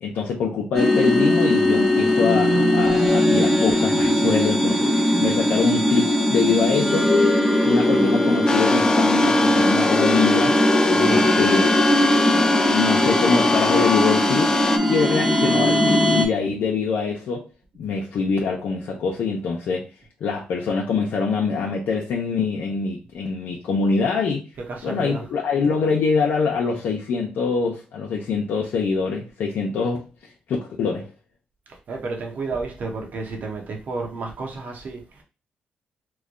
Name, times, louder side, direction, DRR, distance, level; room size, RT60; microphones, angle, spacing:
voice 1, 0.0-7.1 7.6-10.6 11.0-11.8 12.7-14.6 14.8-17.5 17.8-19.9 20.2-24.4 24.8-30.1 30.5-31.1, left 5 dB, 75° left, 0.6 m, -24 dB
sound 1, 0.7-16.2, left 1 dB, 5° right, 0.8 m, -19 dB
sound 2, 8.5-14.8, left 3 dB, 20° left, 0.3 m, -23 dB
voice 2, 10.9-11.3 24.7-25.2 31.9-35.0, right 3 dB, 55° right, 1.0 m, -31 dB
3.1 x 2.2 x 3.7 m
cardioid pair, 100°, 3 cm